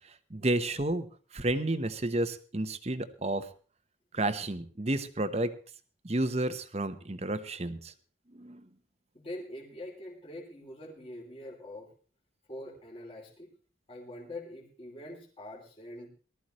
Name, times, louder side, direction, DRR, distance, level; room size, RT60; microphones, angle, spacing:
voice 1, 0.3-1.1 1.3-3.5 4.1-5.5 6.0-7.9 8.3-8.6, right 1 dB, 35° right, 11 dB, 1.0 m, -31 dB
voice 2, 9.1-11.9 12.5-13.5 13.9-16.1, left 1 dB, 30° left, -2 dB, 3.0 m, -44 dB
19.0 x 13.0 x 3.1 m, 0.39 s
head